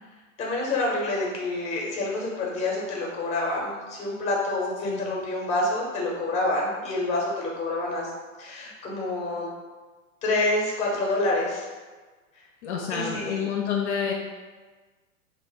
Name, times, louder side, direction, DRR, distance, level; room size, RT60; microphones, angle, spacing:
voice 1, 0.4-8.1 8.4-9.5 10.2-11.7 12.9-13.4, left 2 dB, 15° left, -3 dB, 0.6 m, -27 dB
voice 2, 4.8-5.2 12.6-14.1, left 7 dB, 55° left, 0 dB, 0.5 m, -29 dB
2.5 x 2.0 x 3.8 m, 1.3 s
hypercardioid pair, 110°, 41 cm